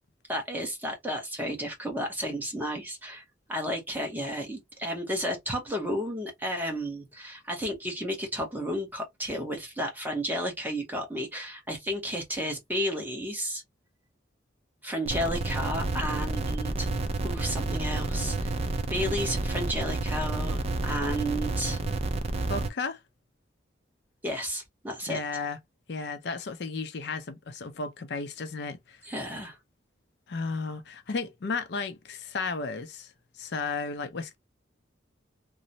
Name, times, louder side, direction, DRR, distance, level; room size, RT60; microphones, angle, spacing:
voice 1, 0.3-3.2 3.5-13.6 14.8-16.9 17.2-18.5 18.9-21.8 24.2-25.2 29.0-29.6, equal, 10° right, 0.8 m, -32 dB
sound 1, 15.0-22.7, right 2 dB, 35° right, 0.4 m, -30 dB
voice 2, 22.5-23.0 25.1-25.6 25.9-29.0 30.3-34.4, left 4 dB, 60° left, 0.5 m, -34 dB
3.0 x 2.0 x 2.6 m
head